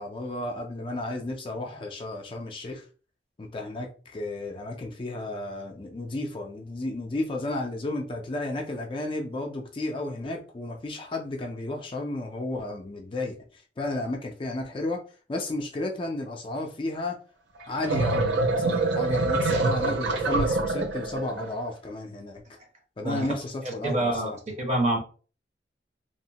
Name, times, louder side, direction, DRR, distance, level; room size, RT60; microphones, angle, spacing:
voice 1, 0.0-2.9 3.4-15.0 15.3-17.2 17.7-22.4 23.0-24.4, left 2 dB, 30° left, 0.3 m, -33 dB
sound 1, 17.6-21.5, right 3 dB, 75° right, 0.5 m, -25 dB
voice 2, 23.6-24.3 24.6-25.0, right 1 dB, 40° right, 0.7 m, -26 dB
2.8 x 2.0 x 2.7 m
head